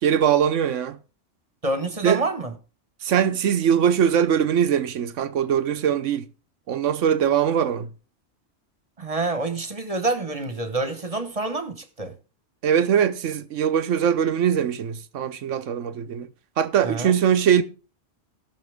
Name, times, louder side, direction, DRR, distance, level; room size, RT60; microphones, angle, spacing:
voice 1, 0.0-1.0 2.0-2.3 3.0-6.3 6.7-7.9 12.6-16.3 16.6-17.6, right 8 dB, 85° right, 1.2 m, -21 dB
voice 2, 1.6-2.5 9.0-12.1 16.8-17.1, right 2 dB, 30° right, 1.2 m, -27 dB
18.5 x 6.2 x 3.5 m
omnidirectional pair, 1.3 m